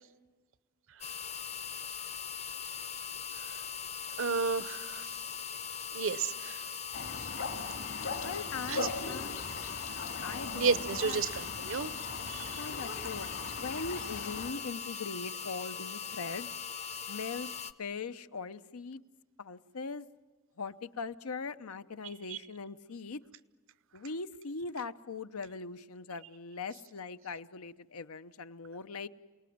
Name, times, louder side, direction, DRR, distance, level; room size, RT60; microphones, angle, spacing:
sound 1, 1.0-17.7, left 7 dB, 30° left, 0.7 m, -40 dB
voice 1, 4.2-5.1 5.9-6.6 8.7-8.9 10.5-11.9 12.3-12.6 22.3-22.4, right 5 dB, 60° right, 17 dB, 0.8 m, -32 dB
sound 2, 6.9-14.5, left 4 dB, 60° left, 2.4 m, -40 dB
voice 2, 8.2-9.4 10.2-11.2 12.6-13.3 13.6-16.5 17.1-17.5 17.8-19.0 19.4-20.1 20.6-23.2 23.9-29.1, left 4 dB, 80° left, 12 dB, 0.8 m, -40 dB
28.5 x 19.0 x 9.3 m, 1.3 s
head